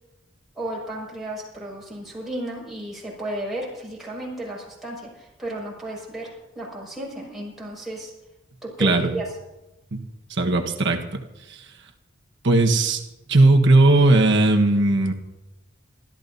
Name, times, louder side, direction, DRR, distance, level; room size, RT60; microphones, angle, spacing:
voice 1, 0.5-8.1 8.6-9.2, right 1 dB, ahead, -6 dB, 5.9 m, -33 dB
voice 2, 8.8-9.2 9.9-10.0 10.3-11.2 11.5-11.7 12.4-13.0 13.3-15.1, right 2 dB, 65° right, 3 dB, 1.3 m, -18 dB
28.5 x 13.5 x 2.7 m, 1.0 s
head